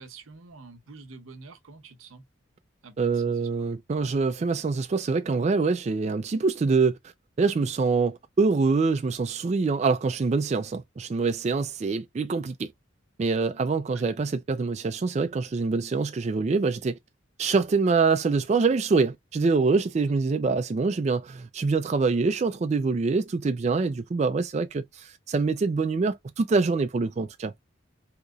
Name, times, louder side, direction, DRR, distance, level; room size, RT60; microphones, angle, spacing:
voice 1, 0.0-2.2 2.8-3.7 13.9-14.1 20.1-20.2, right 3 dB, 85° right, 0.8 m, -47 dB
voice 2, 3.0-7.1 7.4-12.7 13.2-17.0 17.4-27.5, right 4 dB, 35° right, 0.3 m, -25 dB
3.8 x 2.9 x 2.2 m
head